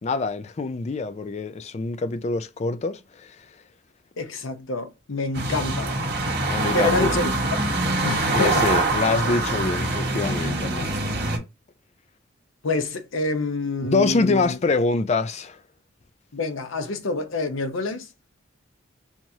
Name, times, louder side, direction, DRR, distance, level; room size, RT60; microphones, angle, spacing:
voice 1, 0.0-3.4 6.5-7.2 8.3-10.9 13.8-15.6, left 3 dB, 35° left, 0.3 m, -25 dB
voice 2, 4.2-6.0 6.7-7.3 8.0-8.7 12.6-14.6 16.3-18.1, left 2 dB, 85° left, 0.8 m, -27 dB
sound 1, 5.3-11.4, right 2 dB, 55° right, 1.3 m, -24 dB
4.6 x 2.9 x 2.7 m
head